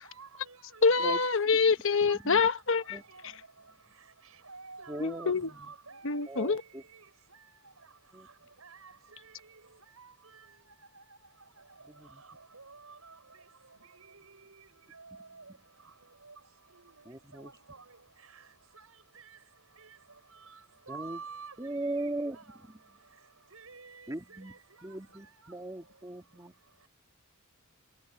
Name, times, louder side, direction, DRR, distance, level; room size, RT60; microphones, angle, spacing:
voice 1, 0.0-0.9 2.1-2.5 3.1-3.2 4.5-6.2 8.6-8.9 9.9-10.1 10.5-10.6 10.9-11.2 12.5-12.8 13.0-13.1 15.0-15.4 16.9-17.1 17.3-17.4 18.8-18.9 20.9-22.6 23.5-24.1 24.5-25.5, right 4 dB, 85° right, 6.1 m, -49 dB
voice 2, 0.8-3.0 5.0-5.5 6.0-6.6, left 4 dB, 65° left, 1.1 m, -26 dB
voice 3, 4.9-5.7 6.3-6.8 8.1-8.3 11.9-12.2 17.1-17.5 20.9-21.2 21.6-22.4 24.1-26.5, right 1 dB, 15° right, 2.6 m, -39 dB
head